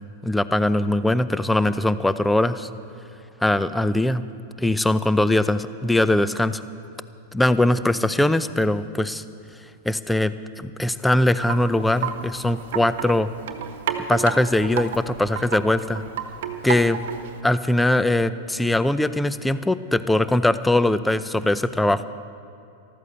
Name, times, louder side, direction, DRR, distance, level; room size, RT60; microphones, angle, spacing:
voice 1, 0.0-2.7 3.4-4.2 4.6-6.6 7.3-9.2 9.8-13.3 14.1-16.0 16.6-17.0 17.4-22.0, left 1 dB, 5° left, 14 dB, 0.6 m, -21 dB
Wind chime, 11.2-17.4, right 8 dB, 65° right, 1.2 m, -32 dB
14.0 x 13.0 x 6.9 m, 2.7 s
hypercardioid pair, 105°, 0 cm